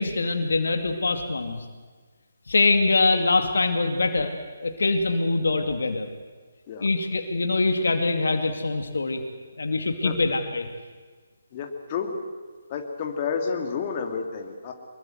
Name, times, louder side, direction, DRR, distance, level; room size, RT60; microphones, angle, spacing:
voice 1, 0.0-1.6 2.5-4.3 4.6-6.1 6.8-9.2 9.6-10.7, left 3 dB, 65° left, 6 dB, 2.4 m, -23 dB
voice 2, 11.5-12.1 12.7-14.7, left 6 dB, 35° left, 3 dB, 2.8 m, -30 dB
24.5 x 22.0 x 8.0 m, 1.5 s
figure-of-eight pair, 145°, 0 cm